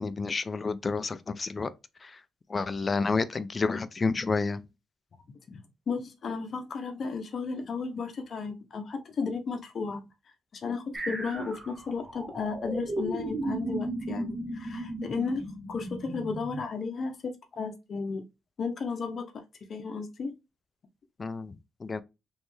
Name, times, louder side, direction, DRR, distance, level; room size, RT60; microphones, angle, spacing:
voice 1, 0.0-1.7 2.0-2.2 2.5-4.6 21.2-21.5 21.8-22.0, left 4 dB, 30° left, 0.4 m, -30 dB
voice 2, 5.3-10.0 10.5-18.2 18.6-19.3 19.7-20.3, left 4 dB, 50° left, 0.8 m, -34 dB
sound 1, 10.9-16.6, right 1 dB, 15° right, 1.1 m, -35 dB
3.2 x 3.2 x 3.1 m
cardioid pair, 90°, 0 cm